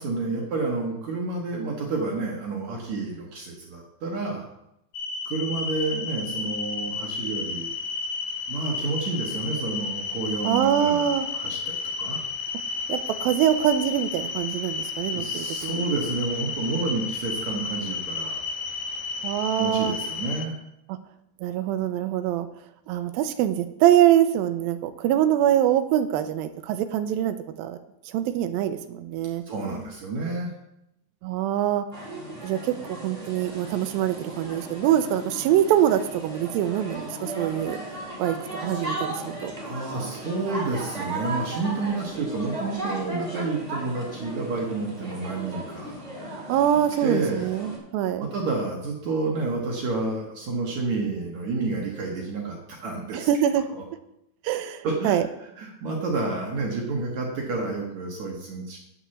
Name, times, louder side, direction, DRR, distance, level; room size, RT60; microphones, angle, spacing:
voice 1, 0.0-4.5 5.3-7.7 8.5-12.2 15.1-18.4 19.6-20.6 29.5-30.5 39.6-45.9 47.0-47.5 48.2-53.3 53.7-53.8 54.8-55.2 55.6-58.8, right 3 dB, 60° right, -1 dB, 2.1 m, -30 dB
sound 1, 4.9-20.5, left 4 dB, 80° left, 2.5 m, -32 dB
voice 2, 10.4-11.3 12.9-15.8 19.2-20.0 20.9-21.0 21.4-22.5 22.9-27.8 28.1-29.4 31.2-31.9 32.4-37.8 38.2-39.5 46.5-48.3 53.1-53.7 54.4-55.3, right 11 dB, 80° right, 9 dB, 2.2 m, -24 dB
sound 2, 31.9-47.8, right 1 dB, 15° right, 1.8 m, -36 dB
9.7 x 5.9 x 7.0 m, 0.83 s
omnidirectional pair, 4.8 m